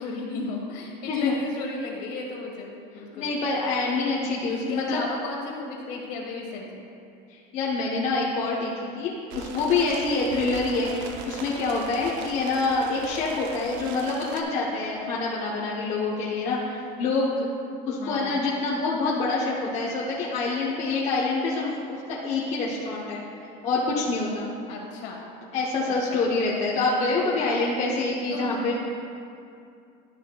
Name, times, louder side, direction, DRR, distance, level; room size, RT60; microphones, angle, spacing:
voice 1, 0.0-3.3 4.5-6.9 18.0-18.4 24.7-25.2 25.9-26.2 28.3-28.6, left 3 dB, 55° left, -1 dB, 1.5 m, -35 dB
voice 2, 3.1-5.0 7.3-17.5 17.9-23.2 23.6-24.5 25.5-28.8, left 3 dB, 35° left, -5 dB, 0.8 m, -26 dB
sound 1, 9.3-14.4, right 4 dB, 85° right, 0.7 m, -40 dB
11.5 x 6.4 x 2.2 m, 2.5 s
cardioid pair, 165°, 21 cm